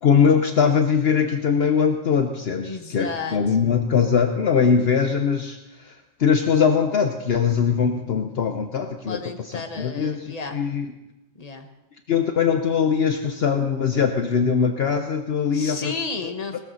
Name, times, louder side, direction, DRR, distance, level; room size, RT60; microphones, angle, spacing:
voice 1, 0.0-5.9 6.2-10.9 12.1-15.9, left 6 dB, 60° left, 6 dB, 1.0 m, -21 dB
voice 2, 2.6-3.6 9.1-10.6 11.3-11.7 15.5-16.6, left 4 dB, 35° left, 5 dB, 1.3 m, -32 dB
19.5 x 14.0 x 4.1 m, 0.97 s
omnidirectional pair, 1.2 m